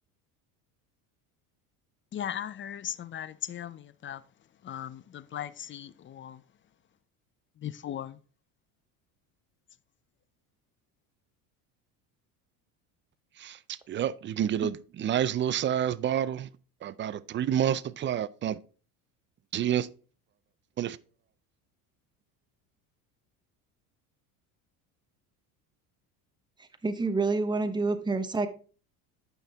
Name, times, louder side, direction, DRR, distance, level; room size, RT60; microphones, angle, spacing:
voice 1, 2.1-4.2 4.6-6.4 7.6-8.2, left 10 dB, 30° left, 0.5 m, -38 dB
voice 2, 13.4-16.5 16.8-18.6 19.5-19.9 20.8-21.0, right 10 dB, 30° right, 0.4 m, -29 dB
voice 3, 26.8-28.5, right 3 dB, 10° right, 1.0 m, -27 dB
9.4 x 6.0 x 3.5 m
supercardioid pair, 95°, 43 cm